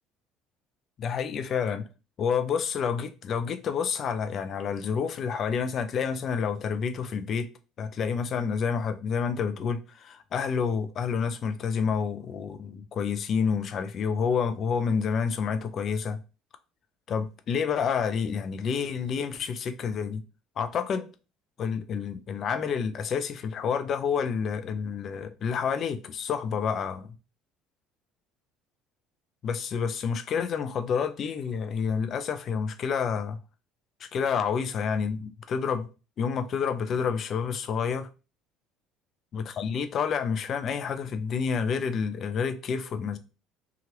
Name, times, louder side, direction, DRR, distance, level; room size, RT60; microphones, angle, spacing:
voice 1, 1.0-1.9 2.2-7.5 7.8-16.2 17.1-20.2 20.6-21.1 21.6-27.1 29.4-33.4 34.0-35.9 36.2-38.1 39.3-43.2, left 6 dB, 50° left, 0.5 m, -29 dB
2.9 x 2.4 x 3.1 m
supercardioid pair, 75°, 0 cm